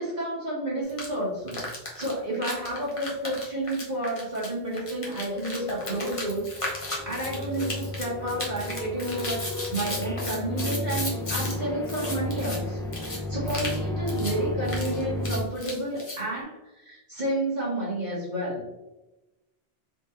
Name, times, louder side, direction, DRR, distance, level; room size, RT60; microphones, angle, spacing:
voice 1, 0.0-1.6 1.9-18.6, right 1 dB, 45° right, -7 dB, 1.3 m, -31 dB
sound 1, 0.9-1.1 1.5-11.6 11.8-12.6 12.9-13.2 13.5-13.8 14.1-14.3 14.7-16.2, left 1 dB, 35° left, 1.0 m, -35 dB
sound 2, 5.3-15.4, left 1 dB, 5° left, 0.6 m, -33 dB
3.7 x 3.7 x 2.9 m, 1.0 s
omnidirectional pair, 1.1 m